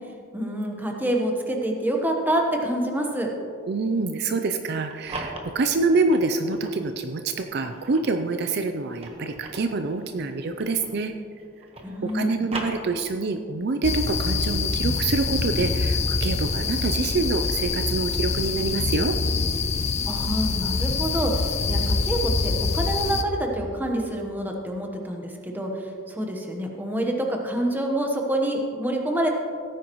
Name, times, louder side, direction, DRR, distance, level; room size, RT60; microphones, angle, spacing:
voice 1, 0.3-3.3 11.8-12.5 20.0-29.3, right 1 dB, 10° right, 1 dB, 1.1 m, -27 dB
voice 2, 3.7-11.1 12.0-19.1, right 3 dB, 50° right, 7 dB, 0.5 m, -26 dB
sound 1, 4.7-6.8 7.4-11.1 11.4-13.4, right 2 dB, 30° right, 1.2 m, -39 dB
sound 2, 13.8-23.2, left 4 dB, 30° left, 0.5 m, -25 dB
16.5 x 9.4 x 3.1 m, 2.5 s
head